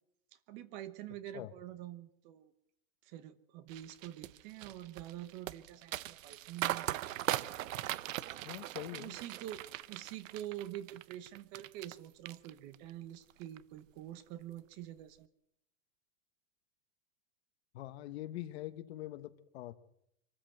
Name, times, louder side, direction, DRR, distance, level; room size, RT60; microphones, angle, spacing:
voice 1, 0.5-2.5 3.0-7.0 8.9-15.3, right 13 dB, 35° right, 1.1 m, -46 dB
sound 1, 3.7-12.0 12.3-12.9 13.3-13.6, right 14 dB, 75° right, 0.9 m, -40 dB
voice 2, 8.4-9.2 17.7-19.8, left 14 dB, 55° left, 1.3 m, -44 dB
25.0 x 13.5 x 7.8 m
supercardioid pair, 170°, 39 cm